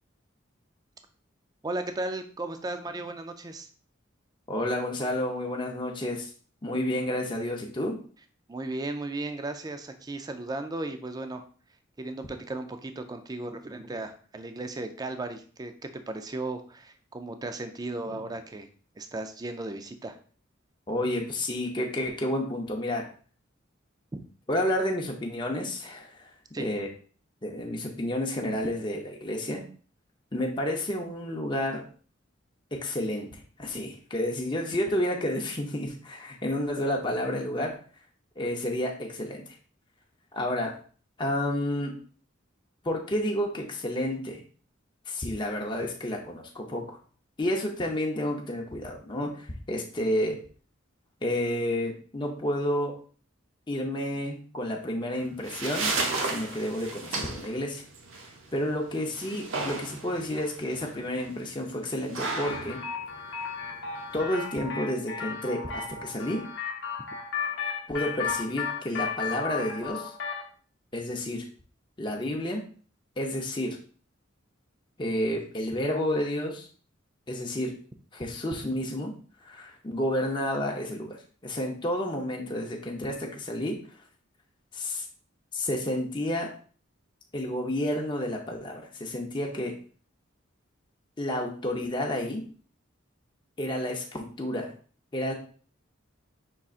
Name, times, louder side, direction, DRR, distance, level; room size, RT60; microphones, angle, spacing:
voice 1, 1.6-3.7 8.5-11.4 12.0-18.7 19.0-20.2 24.1-24.2 26.5-26.7, right 2 dB, 20° right, 8 dB, 0.4 m, -35 dB
voice 2, 4.5-6.3 6.6-8.0 20.9-23.1 24.5-26.3 26.6-26.9 27.4-29.6 30.3-31.8 32.7-37.8 38.4-39.4 40.3-40.8 41.2-41.9 42.8-44.4 45.1-47.0 47.4-50.4 51.2-52.9 53.7-55.9 56.2-57.8 58.5-62.8 64.1-66.5 67.9-70.1 70.9-71.4 72.0-72.6 73.2-73.8 75.0-76.7 77.3-77.7 78.1-79.1 79.4-84.0 84.7-85.0 85.5-86.5 87.3-89.7 91.2-92.4 93.6-94.7 95.1-95.3, left 1 dB, 25° left, 0 dB, 0.6 m, -30 dB
sound 1, 55.2-64.2, right 3 dB, 75° right, 0.8 m, -34 dB
sound 2, 62.3-70.5, left 6 dB, 65° left, 0.8 m, -34 dB
5.5 x 3.7 x 2.4 m, 0.42 s
head